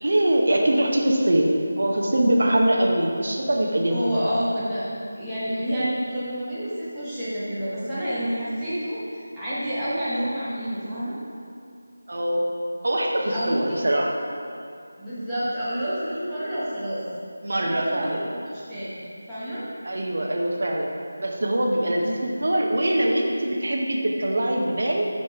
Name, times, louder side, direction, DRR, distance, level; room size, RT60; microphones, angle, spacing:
voice 1, 0.0-1.5 1.8-4.2 12.1-12.4 12.8-14.1 17.4-18.2 19.8-20.9 21.2-25.1, right 1 dB, 55° right, 0 dB, 0.7 m, -23 dB
voice 2, 3.9-4.8 5.2-11.2 13.3-13.8 15.0-17.0 17.5-19.0 19.3-19.6, equal, ahead, -19 dB, 0.9 m, -29 dB
5.6 x 5.2 x 4.6 m, 2.4 s
figure-of-eight pair, 180°, 0 cm